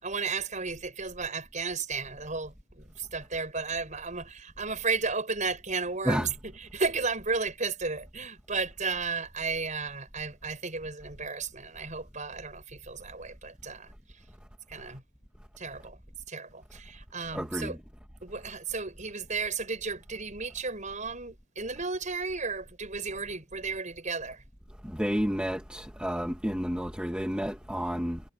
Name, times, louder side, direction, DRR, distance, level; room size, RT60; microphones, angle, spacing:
voice 1, 0.0-6.3 6.6-13.9 14.7-15.0 15.6-16.0 16.3-17.8 18.2-24.4, right 4 dB, 35° right, 6.8 m, -34 dB
voice 2, 17.3-17.8 24.8-28.2, equal, 5° right, 1.7 m, -30 dB
head